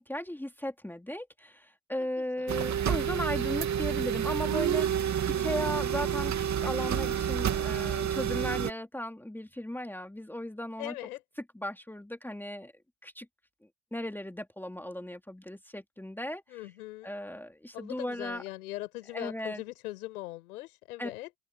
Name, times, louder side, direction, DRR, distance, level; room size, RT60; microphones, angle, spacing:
voice 1, 0.0-5.1 5.4-6.3 6.6-10.9 11.5-12.7 13.0-13.3 13.9-16.6 17.0-18.4 19.1-19.6 21.0-21.1, left 1 dB, 5° left, 2.8 m, -36 dB
voice 2, 2.0-2.6 10.8-11.2 16.5-17.2 17.7-21.3, left 18 dB, 85° left, 6.1 m, -41 dB
sound 1, 2.5-8.7, right 9 dB, 40° right, 2.7 m, -29 dB
open air
hypercardioid pair, 85°, 43 cm